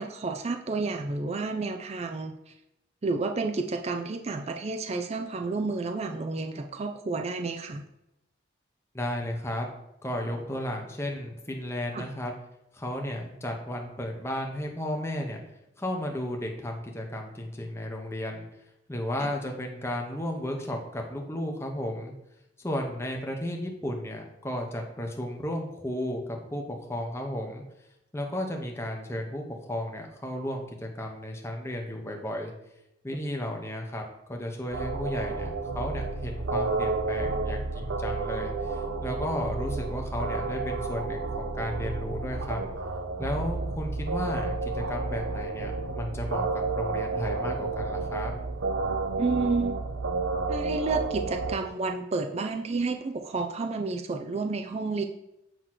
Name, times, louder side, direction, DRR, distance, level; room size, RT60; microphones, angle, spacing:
voice 1, 0.0-2.5 3.0-7.8 11.9-12.1 19.2-19.3 49.2-49.9 50.5-55.1, right 3 dB, 35° right, 5 dB, 0.4 m, -30 dB
voice 2, 8.9-9.7 10.0-12.3 12.7-15.4 15.8-18.5 18.9-22.1 22.6-27.6 28.1-32.5 33.0-35.5 35.7-42.6 43.2-48.3, left 1 dB, 15° left, 1 dB, 0.9 m, -34 dB
sound 1, 34.7-51.6, right 3 dB, 80° right, 0.7 m, -31 dB
7.9 x 3.0 x 5.9 m, 0.86 s
head